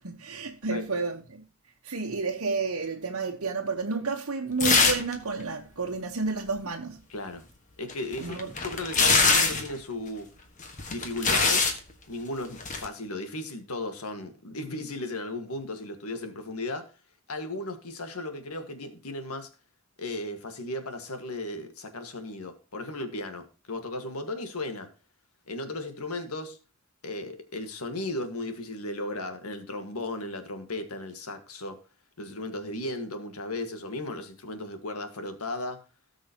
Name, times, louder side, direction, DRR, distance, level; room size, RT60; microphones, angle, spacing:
voice 1, 0.0-1.4 1.8-7.0 8.2-8.5, right 4 dB, 80° right, 1.2 m, -31 dB
sound 1, 4.6-5.1 5.4-5.5 7.9-9.7 10.6-11.8 12.6-12.9, left 4 dB, 35° left, 1.6 m, -23 dB
voice 2, 7.1-7.4 7.8-10.3 10.9-11.6 12.1-16.9 17.3-19.5 20.0-24.9 25.5-26.6 27.0-31.8 32.2-35.8, left 2 dB, 90° left, 1.8 m, -35 dB
17.5 x 6.3 x 3.0 m
head